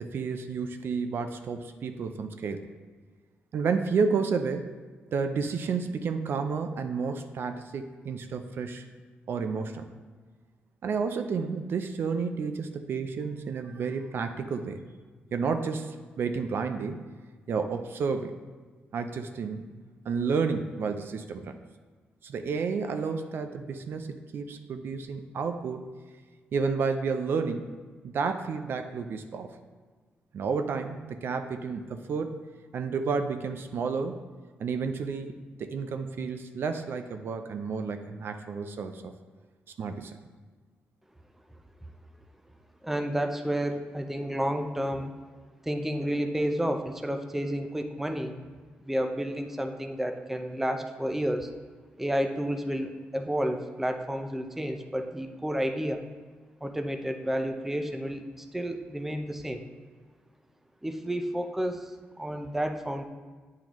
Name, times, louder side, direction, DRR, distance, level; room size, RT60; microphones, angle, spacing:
voice 1, 0.0-2.6 3.5-4.7 5.1-8.9 9.3-9.9 10.8-14.8 15.3-17.0 17.5-18.4 18.9-19.7 20.1-21.6 22.2-25.8 26.5-27.7 28.0-29.5 30.3-32.3 32.7-34.2 34.6-35.3 35.6-39.1 39.8-40.2, right 5 dB, 65° right, 7 dB, 0.4 m, -31 dB
voice 2, 42.8-45.1 45.7-48.3 48.8-51.5 52.0-56.1 56.6-59.6 60.8-63.0, equal, 5° right, 6 dB, 0.5 m, -31 dB
8.6 x 3.7 x 3.0 m, 1.4 s
cardioid pair, 85°, 4 cm